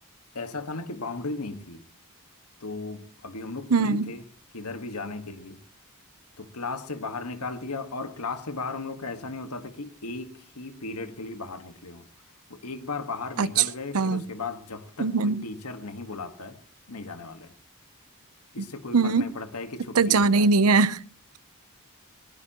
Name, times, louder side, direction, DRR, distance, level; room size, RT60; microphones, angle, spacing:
voice 1, 0.3-1.8 2.6-4.2 4.5-5.6 6.4-12.1 12.5-16.6 16.9-17.5 18.5-20.5, left 3 dB, 90° left, 1.6 m, -36 dB
voice 2, 3.7-4.1 13.4-13.6 13.9-14.2 15.0-15.4 18.9-19.3 20.0-21.0, right 4 dB, 80° right, 0.7 m, -21 dB
20.5 x 20.0 x 3.0 m
head